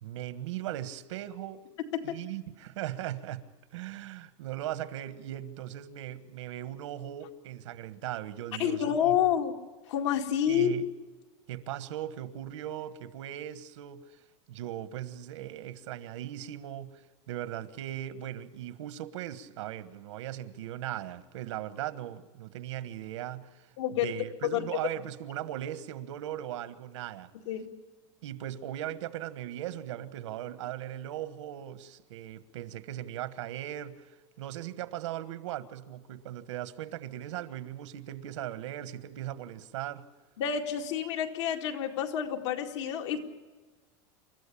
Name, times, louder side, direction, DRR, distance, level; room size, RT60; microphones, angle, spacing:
voice 1, 0.0-1.6 2.0-3.4 3.7-9.2 10.5-10.8 11.5-14.0 14.5-23.7 24.0-27.3 28.2-40.0, right 12 dB, 80° right, 1.5 m, -38 dB
voice 2, 8.6-9.6 9.9-10.7 23.8-24.1 24.4-24.6 27.5-27.7 40.4-43.2, left 9 dB, 75° left, 2.4 m, -28 dB
28.5 x 14.0 x 8.6 m
supercardioid pair, 175°, 15 cm